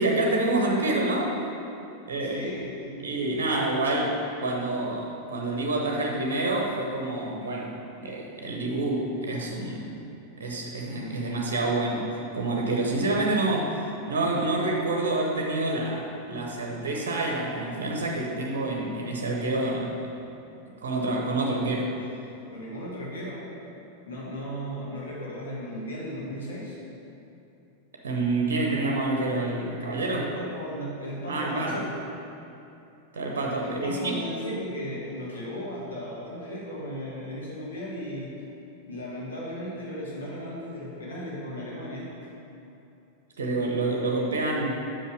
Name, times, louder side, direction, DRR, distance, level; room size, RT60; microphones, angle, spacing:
voice 1, 0.0-1.4 2.1-2.4 3.0-10.0 10.4-20.1 20.7-21.9 28.0-30.2 31.3-31.8 33.1-34.2 43.4-44.7, right 2 dB, 65° right, 0 dB, 0.9 m, -27 dB
voice 2, 2.2-3.1 22.5-23.5 24.0-26.8 30.0-31.9 33.6-38.3 38.8-42.1, equal, 70° left, -5 dB, 1.5 m, -36 dB
5.8 x 5.5 x 6.1 m, 2.8 s
figure-of-eight pair, 90°, 0 cm